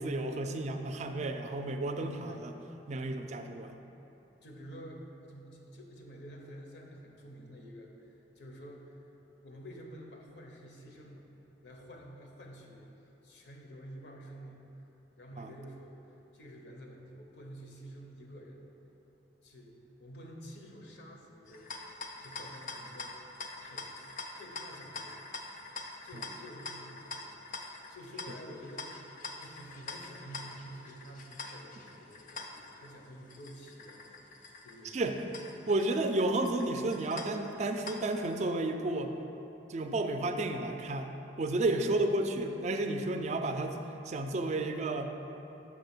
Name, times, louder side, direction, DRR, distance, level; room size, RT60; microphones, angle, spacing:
voice 1, 0.0-2.5 2.9-3.7 15.4-15.5 34.9-35.2 35.7-39.1 39.7-43.8 44.0-45.1, right 2 dB, 40° right, 6 dB, 0.3 m, -32 dB
voice 2, 4.4-8.9 9.4-11.3 11.6-12.9 13.2-14.7 15.2-18.6 19.4-23.2 23.6-25.4 26.0-34.1 34.6-35.1, equal, 75° left, 0 dB, 0.7 m, -50 dB
sound 1, 21.5-38.3, left 3 dB, 45° left, 0.4 m, -45 dB
6.1 x 3.3 x 5.8 m, 3.0 s
head